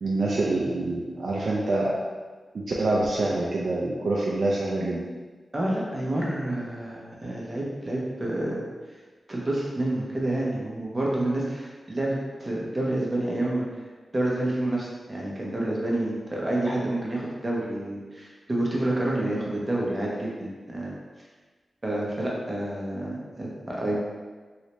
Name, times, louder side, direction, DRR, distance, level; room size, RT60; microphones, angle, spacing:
voice 1, 0.0-2.0 2.5-5.0, right 2 dB, 70° right, -4 dB, 0.4 m, -26 dB
voice 2, 5.5-8.6 9.3-13.6 14.1-20.9 21.8-24.0, right 1 dB, 30° right, -4 dB, 0.9 m, -28 dB
3.2 x 2.7 x 3.0 m, 1.4 s
cardioid pair, 70°, 0 cm